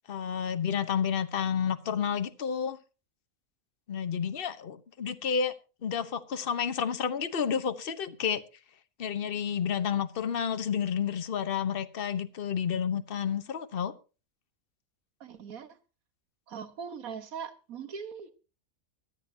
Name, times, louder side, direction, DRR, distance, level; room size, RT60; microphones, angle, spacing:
voice 1, 0.1-2.8 3.9-5.5 5.8-8.4 9.0-13.9, left 7 dB, 45° left, 10 dB, 1.1 m, -30 dB
voice 2, 15.2-15.8 16.5-18.3, right 6 dB, 90° right, 10 dB, 1.8 m, -40 dB
24.0 x 8.2 x 2.8 m, 0.34 s
omnidirectional pair, 1.4 m